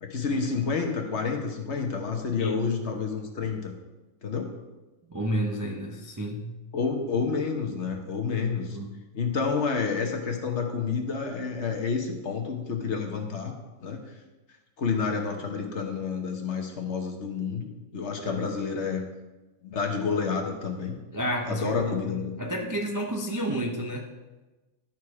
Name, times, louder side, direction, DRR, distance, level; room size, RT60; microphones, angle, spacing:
voice 1, 0.0-3.7 4.2-4.5 6.7-8.8 9.1-14.0 14.8-19.0 19.6-21.0 21.5-22.3, left 5 dB, 50° left, 3 dB, 1.2 m, -29 dB
voice 2, 5.1-6.5 8.7-8.9 18.2-18.4 21.1-24.1, equal, 30° right, -1 dB, 0.3 m, -31 dB
12.5 x 4.6 x 4.8 m, 1.1 s
omnidirectional pair, 1.8 m